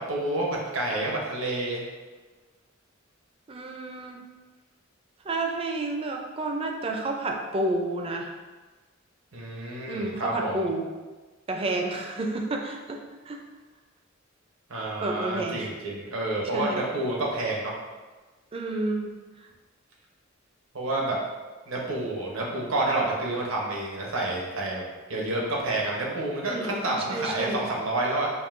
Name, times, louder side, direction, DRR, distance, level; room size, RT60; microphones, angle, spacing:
voice 1, 0.0-1.9 9.3-10.7 14.7-17.8 20.7-21.2 21.7-24.8 25.1-28.3, right 2 dB, 80° right, -3 dB, 0.9 m, -29 dB
voice 2, 3.5-4.2 5.2-8.3 9.9-10.9 11.5-13.0 13.3-13.4 15.0-15.7 16.5-16.8 18.5-19.1 26.5-26.8 27.1-27.7, right 2 dB, 30° right, 2 dB, 0.4 m, -30 dB
5.3 x 2.6 x 2.5 m, 1.3 s
head